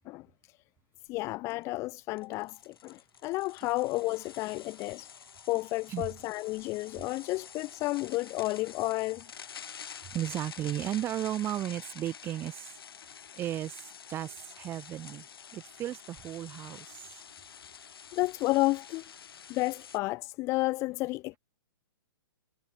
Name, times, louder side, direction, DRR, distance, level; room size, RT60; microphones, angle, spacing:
sound 1, 1.1-1.2 1.5-1.6 2.2-20.0, left 7 dB, 80° left, 7.4 m, -48 dB
voice 1, 1.1-5.1 5.5-9.2 18.1-19.1 19.5-21.4, left 20 dB, 25° left, 1.4 m, -31 dB
voice 2, 10.1-12.7 13.4-15.2 15.5-17.1, right 12 dB, 20° right, 6.6 m, -35 dB
hypercardioid pair, 160°, 12 cm